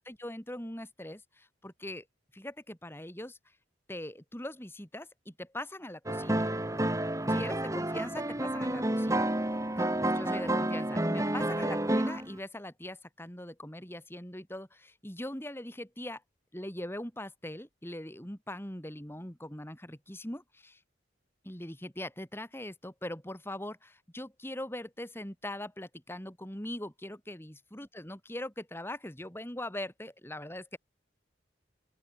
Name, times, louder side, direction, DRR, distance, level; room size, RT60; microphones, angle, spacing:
voice 1, 0.0-2.0 2.3-3.4 3.9-6.4 7.3-9.3 9.8-16.2 16.5-20.8 21.4-30.8, left 1 dB, 15° left, 3.6 m, -41 dB
sound 1, 6.1-12.3, right 1 dB, 15° right, 1.8 m, -30 dB
open air
head